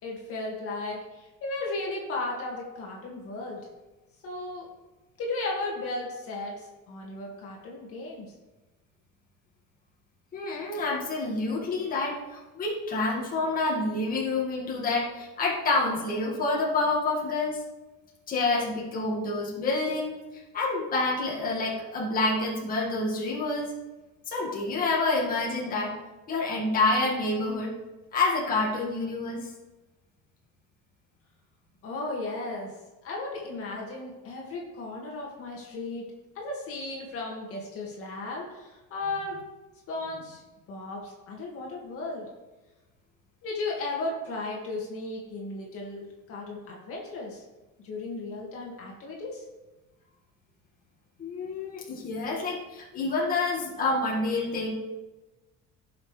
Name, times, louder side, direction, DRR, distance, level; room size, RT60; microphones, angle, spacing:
voice 1, 0.0-3.6 4.2-4.7 5.2-8.3 31.8-32.7 33.0-36.1 36.3-39.4 39.9-40.4 40.7-42.3 43.4-47.4 47.8-49.4, left 2 dB, 45° left, -2 dB, 2.1 m, -35 dB
voice 2, 10.3-17.6 18.3-23.7 24.3-25.9 26.3-27.7 28.1-29.5 51.2-54.7, left 3 dB, 30° left, -4 dB, 2.0 m, -28 dB
16.5 x 6.2 x 3.4 m, 1.1 s
cardioid pair, 165°, 31 cm